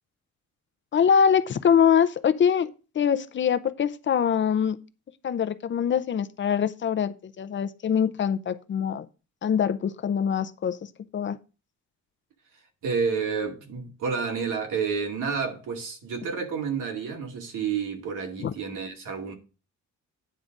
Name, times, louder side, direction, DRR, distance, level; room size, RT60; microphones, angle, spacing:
voice 1, 0.9-2.7 2.9-4.8 5.2-9.1 9.4-10.8 11.1-11.4 18.4-18.5, left 7 dB, 40° left, 0.6 m, -23 dB
voice 2, 12.8-19.3, right 5 dB, 85° right, 2.3 m, -30 dB
9.3 x 3.9 x 7.2 m
cardioid pair, 165°, 31 cm